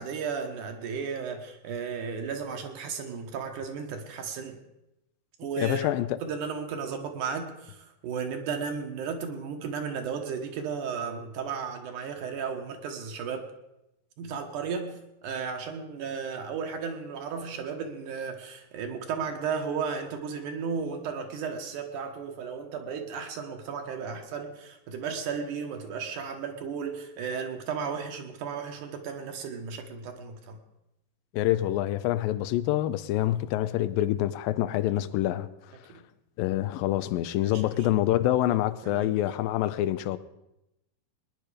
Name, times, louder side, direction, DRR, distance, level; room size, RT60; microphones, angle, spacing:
voice 1, 0.0-4.6 5.4-5.9 6.2-13.5 14.2-30.6 35.9-36.0 37.4-37.9 38.8-39.2, right 6 dB, 70° right, 2.7 m, -34 dB
voice 2, 5.6-6.1 31.3-35.5 36.4-40.2, left 14 dB, 90° left, 2.4 m, -26 dB
20.5 x 10.0 x 5.0 m
omnidirectional pair, 3.9 m